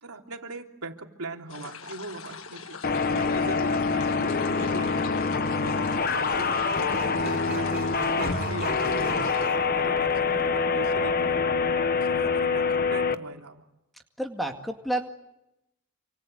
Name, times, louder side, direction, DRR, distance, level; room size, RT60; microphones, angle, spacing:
voice 1, 0.0-2.8 3.1-5.2 5.6-9.4 9.7-11.4 12.0-13.6, right 2 dB, 85° right, 3 dB, 3.0 m, -40 dB
sound 1, 1.5-9.5, left 5 dB, 65° left, 1.4 m, -42 dB
sound 2, 2.8-13.1, left 4 dB, 40° left, 1.1 m, -25 dB
Sawing, 4.2-4.3 5.4-9.6, right 3 dB, 40° right, 4.4 m, -40 dB
voice 2, 14.2-15.1, right 1 dB, ahead, 4 dB, 2.1 m, -30 dB
28.0 x 26.0 x 8.0 m, 0.89 s
head